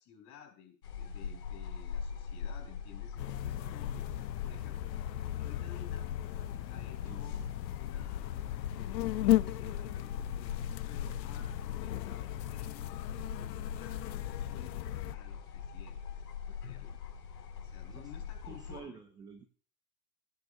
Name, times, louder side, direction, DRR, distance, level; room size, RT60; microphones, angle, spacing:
voice 1, 0.0-4.1 4.4-4.9 5.4-6.1 6.7-7.5 7.7-10.5 10.9-13.0 13.3-16.0 16.5-17.0 17.6-19.0, left 9 dB, 35° left, 3 dB, 4.6 m, -54 dB
sound 1, 0.8-18.8, left 7 dB, 70° left, 6.6 m, -42 dB
sound 2, 3.2-15.1, left 15 dB, 85° left, 0.6 m, -36 dB
voice 2, 18.5-19.4, right 6 dB, 10° right, 8 dB, 0.4 m, -49 dB
20.0 x 9.4 x 2.6 m, 0.40 s
hypercardioid pair, 130°, 49 cm